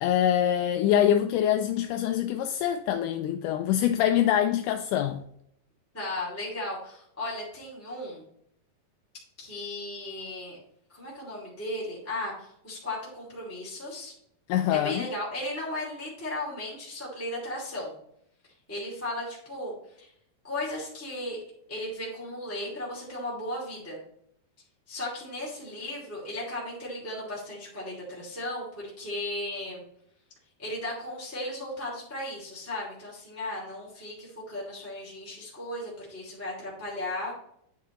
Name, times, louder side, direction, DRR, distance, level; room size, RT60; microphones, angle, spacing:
voice 1, 0.0-5.2 14.5-15.1, left 10 dB, 80° left, 1.9 m, -24 dB
voice 2, 5.9-8.2 9.4-10.6 10.9-14.1 14.7-17.9 18.7-20.1 20.4-21.4 21.7-24.0 24.9-29.8 30.6-37.3, left 1 dB, 5° left, 2.1 m, -36 dB
10.5 x 5.9 x 3.1 m
omnidirectional pair, 4.1 m